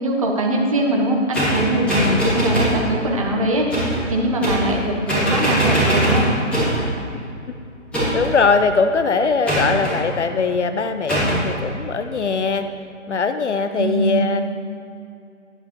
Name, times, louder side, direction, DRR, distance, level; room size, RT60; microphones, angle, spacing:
voice 1, 0.0-6.3 13.8-14.3, right 1 dB, 25° right, 0 dB, 1.1 m, -22 dB
sound 1, 1.3-2.8 3.7-4.0 4.4-4.8 5.1-6.9 7.9-8.4 9.5-10.0 11.1-11.4, right 1 dB, 5° left, 2.0 m, -20 dB
voice 2, 8.1-12.7 13.1-14.4, left 4 dB, 60° left, 9 dB, 0.7 m, -20 dB
12.5 x 10.5 x 3.1 m, 2.6 s
hypercardioid pair, 165°, 39 cm